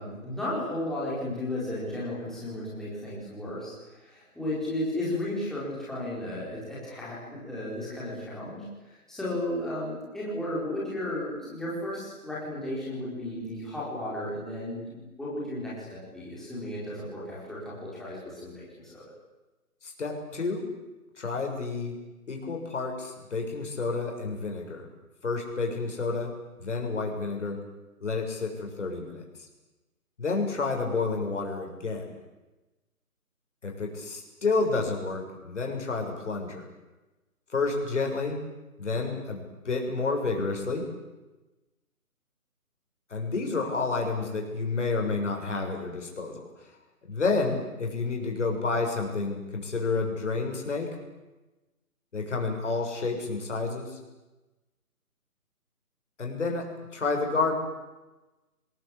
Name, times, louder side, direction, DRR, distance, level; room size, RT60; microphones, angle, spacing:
voice 1, 0.0-19.1, left 1 dB, ahead, -8 dB, 4.6 m, -34 dB
voice 2, 19.8-20.7 21.2-21.9 22.3-24.8 25.2-26.3 26.6-27.6 28.0-29.2 30.2-32.1 33.6-36.7 37.5-38.4 38.8-40.9 43.1-46.4 47.0-51.0 52.1-54.0 56.2-57.5, left 3 dB, 50° left, 2 dB, 6.8 m, -30 dB
25.5 x 20.5 x 8.6 m, 1.1 s
hypercardioid pair, 170°, 45 cm